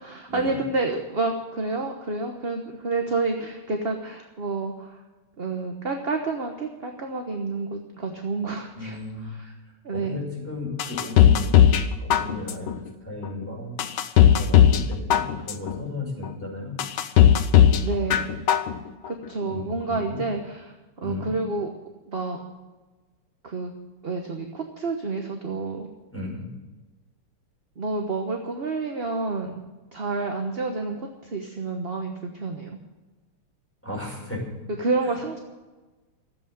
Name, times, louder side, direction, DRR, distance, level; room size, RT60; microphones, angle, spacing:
voice 1, 0.0-5.0 5.4-9.5 9.8-10.2 17.8-18.3 19.1-21.7 22.1-22.4 23.4-23.7 24.0-25.9 27.8-29.6 29.9-32.8 34.7-35.4, right 3 dB, 35° right, 3 dB, 1.1 m, -29 dB
voice 2, 8.8-9.3 9.9-11.6 12.0-13.7 14.3-16.7 19.5-20.2 21.0-21.3 26.1-26.5 33.8-34.4 35.0-35.1, left 2 dB, 5° left, -3 dB, 5.6 m, -35 dB
sound 1, 10.8-11.8 12.1-12.7 13.2-13.3 13.8-14.8 15.1-15.7 16.2-16.3 16.8-17.8 18.1-18.7 19.1-19.2, left 10 dB, 75° left, 1.7 m, -16 dB
14.0 x 8.3 x 9.0 m, 1.2 s
omnidirectional pair, 2.4 m